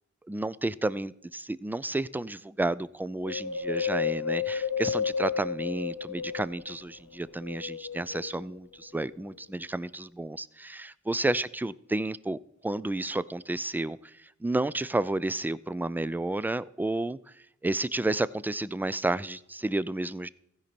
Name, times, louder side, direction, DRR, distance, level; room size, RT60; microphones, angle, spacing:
voice 1, 0.3-12.4 12.6-14.1 14.4-17.2 17.6-20.3, right 2 dB, 5° right, 0.3 m, -31 dB
Wind, 3.2-6.8 7.3-8.6 9.1-9.2, left 6 dB, 80° left, 0.6 m, -32 dB
15.5 x 5.2 x 4.3 m
wide cardioid pair, 50°, 30 cm